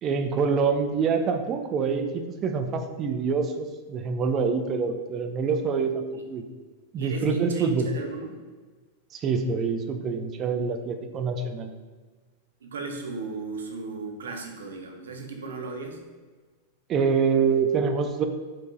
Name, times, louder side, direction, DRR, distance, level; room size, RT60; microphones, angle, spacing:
voice 1, 0.0-6.0 6.3-6.5 6.9-7.9 9.1-11.7 16.9-18.3, right 5 dB, 30° right, 7 dB, 0.5 m, -26 dB
voice 2, 7.0-8.3 12.6-16.0, right 3 dB, 65° right, 3 dB, 0.7 m, -35 dB
4.5 x 4.5 x 2.5 m, 1.4 s
figure-of-eight pair, 90°, 0 cm